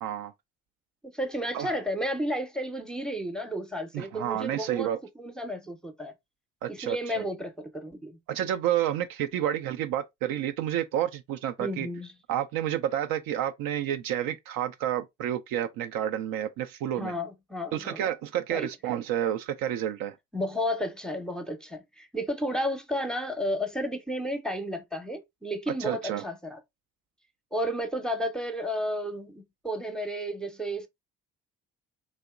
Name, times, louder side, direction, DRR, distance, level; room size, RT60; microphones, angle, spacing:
voice 1, 0.0-0.3 1.5-1.8 3.9-5.0 6.6-7.2 8.3-11.9 12.3-17.1 17.7-20.2 25.8-26.2, right 11 dB, 65° right, 0.5 m, -30 dB
voice 2, 1.0-4.9 5.2-6.1 6.7-8.2 11.6-12.1 17.0-18.1 18.5-18.7 20.3-26.6 27.5-30.9, equal, ahead, 0.6 m, -32 dB
3.1 x 2.8 x 2.3 m
hypercardioid pair, 50°, 37 cm